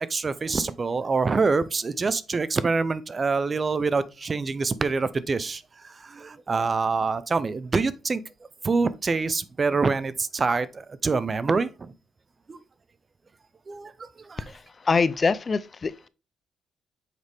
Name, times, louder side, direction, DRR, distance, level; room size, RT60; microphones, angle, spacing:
voice 1, 0.1-8.2 8.6-11.9 12.5-12.6 13.7-14.5, right 4 dB, 35° right, 0.5 m, -26 dB
voice 2, 14.5-16.1, left 4 dB, 35° left, 0.5 m, -25 dB
6.6 x 4.8 x 3.4 m
cardioid pair, 90°, 0 cm